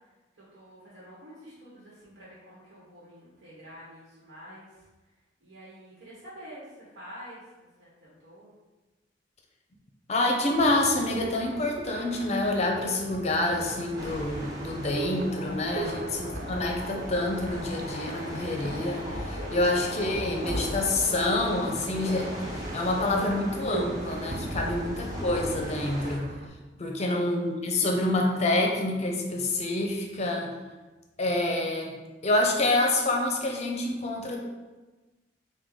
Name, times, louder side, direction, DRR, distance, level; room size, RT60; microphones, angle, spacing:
voice 1, 0.3-4.8 5.4-8.5 15.8-16.3 26.8-27.2, equal, 90° right, -7 dB, 1.1 m, -48 dB
voice 2, 10.1-26.3 26.8-30.6 31.2-31.9 32.2-34.4, left 2 dB, 40° left, 1 dB, 0.6 m, -27 dB
sound 1, 10.5-26.5, right 3 dB, 50° right, 0.3 m, -40 dB
sound 2, 14.0-26.2, equal, 20° right, 0.7 m, -37 dB
sound 3, 14.9-22.3, left 3 dB, 85° left, 0.4 m, -44 dB
4.5 x 2.3 x 3.8 m, 1.2 s
head